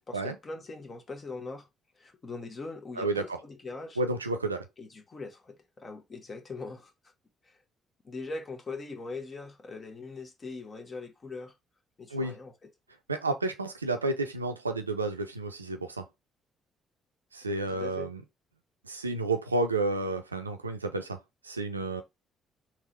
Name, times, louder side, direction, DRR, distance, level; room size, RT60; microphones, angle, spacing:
voice 1, 0.1-1.7 2.0-4.0 4.8-6.9 7.4-7.5 8.0-11.5 12.0-12.7 17.7-18.1, left 3 dB, 35° left, 1.3 m, -41 dB
voice 2, 4.0-4.6 12.1-12.4 13.1-16.0 17.3-18.2 18.9-21.2 21.4-22.0, right 2 dB, 90° right, 0.4 m, -31 dB
3.7 x 3.1 x 4.2 m
figure-of-eight pair, 45°, 0 cm